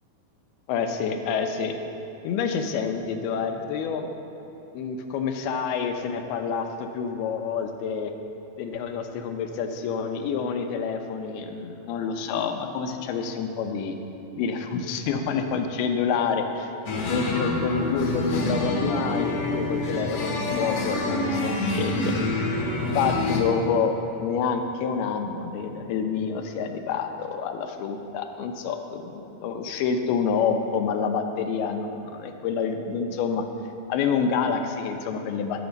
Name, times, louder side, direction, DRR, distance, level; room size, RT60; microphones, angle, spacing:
voice 1, 0.7-1.8 2.2-4.1 4.7-8.1 8.6-14.0 14.4-16.7 17.1-22.1 23.0-33.5 33.9-35.6, left 6 dB, 80° left, 6 dB, 2.8 m, -28 dB
sound 1, 16.9-23.4, left 2 dB, 55° left, 1.8 m, -26 dB
19.0 x 7.0 x 5.3 m, 3.0 s
omnidirectional pair, 4.4 m